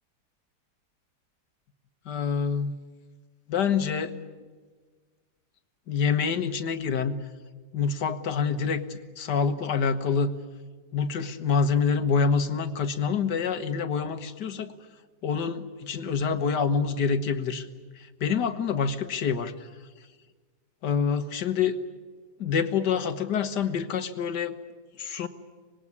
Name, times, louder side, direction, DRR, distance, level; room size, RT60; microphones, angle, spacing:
voice 1, 2.1-2.7 3.5-4.2 5.9-7.2 7.7-10.3 10.9-14.8 15.2-17.7 18.2-19.5 20.8-21.8 22.4-24.6 25.0-25.3, left 6 dB, 80° left, 10 dB, 1.9 m, -26 dB
25.5 x 20.5 x 9.7 m, 1.4 s
omnidirectional pair, 1.8 m